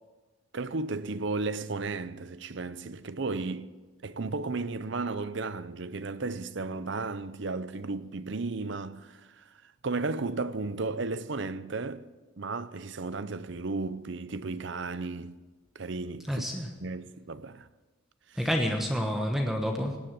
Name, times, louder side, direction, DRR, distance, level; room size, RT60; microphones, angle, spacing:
voice 1, 0.5-3.7 4.0-9.4 9.8-12.0 12.4-15.4 15.7-16.4 16.8-17.7, right 3 dB, 60° right, 0.6 m, -34 dB
voice 2, 16.3-16.7 18.4-20.0, equal, ahead, 1.2 m, -28 dB
18.0 x 9.6 x 7.5 m
head